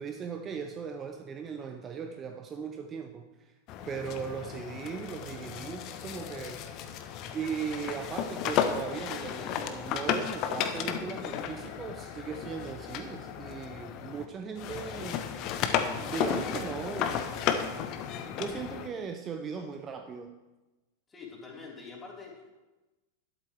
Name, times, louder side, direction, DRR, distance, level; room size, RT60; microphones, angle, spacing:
voice 1, 0.0-3.5 3.9-6.7 7.3-15.3 16.0-17.2 18.2-20.3, right 6 dB, 25° right, 7 dB, 0.7 m, -38 dB
sound 1, 3.7-14.2 14.6-18.9, left 8 dB, 40° left, 1.0 m, -34 dB
voice 2, 21.1-22.6, left 4 dB, 15° left, -1 dB, 3.0 m, -45 dB
12.0 x 11.5 x 3.4 m, 1.1 s
figure-of-eight pair, 90°, 0 cm